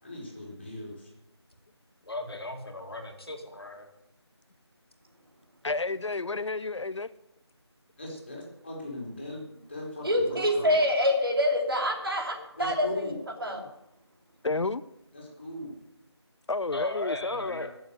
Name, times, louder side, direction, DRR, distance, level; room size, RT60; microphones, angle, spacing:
voice 1, 0.0-1.1 8.0-10.7 12.6-13.2 15.1-15.7, left 1 dB, 25° left, -3 dB, 3.4 m, -39 dB
voice 2, 2.0-3.9 16.7-17.8, left 2 dB, 60° left, 3 dB, 2.4 m, -36 dB
voice 3, 5.6-7.1 14.4-14.8 16.5-17.7, left 3 dB, 85° left, 15 dB, 0.6 m, -31 dB
voice 4, 10.0-12.9 13.4-13.6, left 1 dB, 55° right, 2 dB, 3.0 m, -25 dB
14.0 x 7.2 x 8.0 m, 0.84 s
figure-of-eight pair, 175°, 15 cm